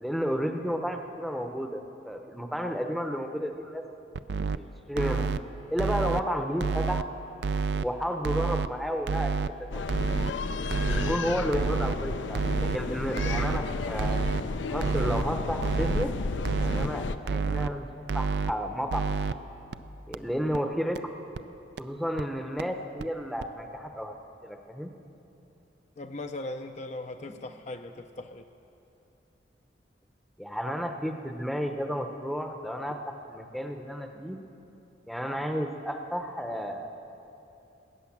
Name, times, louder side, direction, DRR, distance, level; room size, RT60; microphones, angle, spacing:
voice 1, 0.0-3.8 4.5-4.6 4.9-5.3 5.7-7.1 7.7-10.0 10.4-10.5 10.8-14.2 14.7-16.1 16.5-19.1 20.1-21.0 21.8-24.1 24.4-24.9 30.4-33.0 33.3-34.4 35.1-36.9, equal, ahead, 5 dB, 0.7 m, -32 dB
sound 1, 4.2-4.6 5.0-5.4 5.8-6.2 6.6-7.0 7.4-7.8 8.2-8.7 9.1-9.5 9.9-10.3 10.7-11.1 11.5-12.0 12.4-12.8 13.2-13.6 14.0-14.4 14.8-15.2 15.6-16.1 16.5-16.9 17.3-17.7 18.1-18.5 18.9-19.3 19.7-19.8 20.1-20.2 20.5-20.6 21.0-21.1 21.4-21.5 21.8-21.9 22.2-22.3 22.6-22.7 23.0-23.1 23.4-23.5, right 4 dB, 65° right, 0.4 m, -28 dB
sound 2, 9.7-17.2, left 3 dB, 85° left, 0.5 m, -32 dB
voice 2, 26.0-28.5, left 2 dB, 40° left, 6 dB, 0.4 m, -39 dB
19.0 x 9.4 x 7.3 m, 2.9 s
head